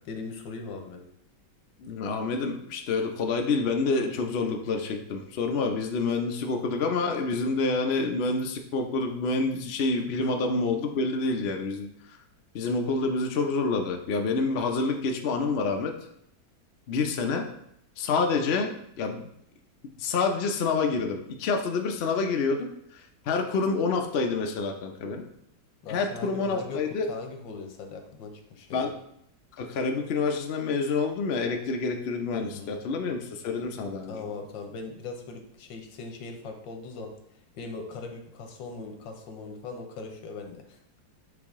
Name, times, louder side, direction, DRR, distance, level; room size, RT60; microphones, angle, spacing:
voice 1, 0.0-1.0 10.2-10.3 25.8-28.9 32.3-32.8 34.1-37.1 37.5-40.8, left 4 dB, 85° left, 4 dB, 1.6 m, -40 dB
voice 2, 1.8-12.2 12.5-16.0 16.9-17.5 18.0-19.3 20.0-25.2 25.9-27.1 28.7-29.0 29.6-34.2, left 4 dB, 65° left, 3 dB, 0.6 m, -28 dB
7.9 x 3.5 x 3.6 m, 0.76 s
omnidirectional pair, 2.0 m